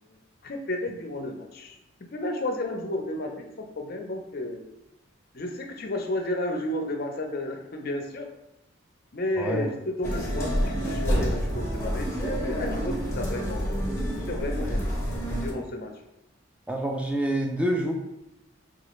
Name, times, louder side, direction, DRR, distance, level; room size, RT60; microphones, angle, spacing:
voice 1, 0.1-1.8 2.1-4.6 5.3-8.3 9.1-13.9 14.3-14.9 15.4-15.9, left 1 dB, 50° left, 3 dB, 0.5 m, -32 dB
sound 1, 10.0-15.5, equal, 15° left, 0.9 m, -28 dB
voice 2, 16.7-17.9, right 1 dB, 5° right, 1 dB, 0.4 m, -27 dB
5.2 x 2.4 x 3.0 m, 0.89 s
head